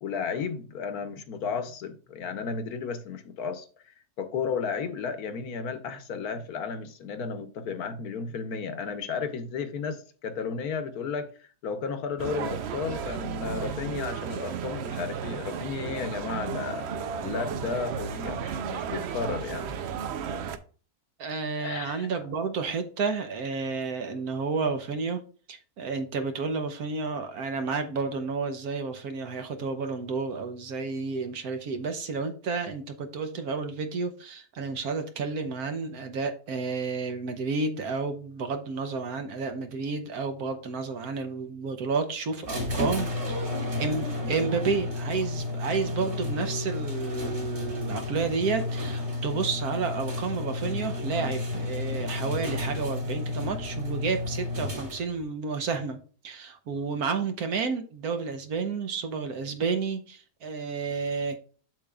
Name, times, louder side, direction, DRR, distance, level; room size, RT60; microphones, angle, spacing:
voice 1, 0.0-16.9 17.2-19.7 21.6-22.1, left 5 dB, 70° left, 1.3 m, -33 dB
sound 1, 12.2-20.6, right 7 dB, 90° right, 0.5 m, -34 dB
voice 2, 21.2-25.2 25.5-43.5 43.8-56.0 56.2-61.4, right 4 dB, 65° right, 1.3 m, -31 dB
sound 2, 42.4-55.2, left 2 dB, 35° right, 2.4 m, -32 dB
7.6 x 6.6 x 2.4 m
omnidirectional pair, 1.8 m